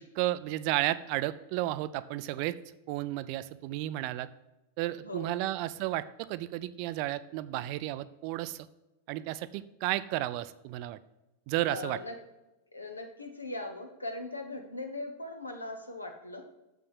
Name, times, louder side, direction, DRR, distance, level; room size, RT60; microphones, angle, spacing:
voice 1, 0.2-2.5 2.9-4.3 4.8-8.7 9.1-11.0 11.5-12.0, right 15 dB, 45° right, 15 dB, 0.4 m, -33 dB
voice 2, 5.0-5.5 11.7-12.2 12.7-16.5, left 2 dB, 80° left, 5 dB, 1.3 m, -40 dB
7.1 x 5.8 x 6.2 m, 1.0 s
figure-of-eight pair, 90°, 0 cm